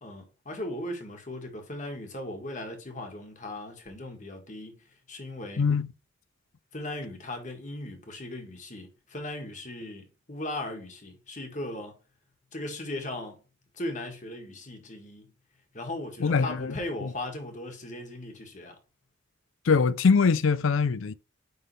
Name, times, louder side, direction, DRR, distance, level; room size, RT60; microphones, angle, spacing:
voice 1, 0.0-5.6 6.7-12.0 12.5-13.4 13.7-15.3 15.7-18.8, left 1 dB, 35° left, 1.7 m, -38 dB
voice 2, 5.6-5.9 16.2-16.7 17.0-17.1 19.7-21.1, left 5 dB, 75° left, 0.5 m, -23 dB
9.7 x 3.7 x 3.3 m
head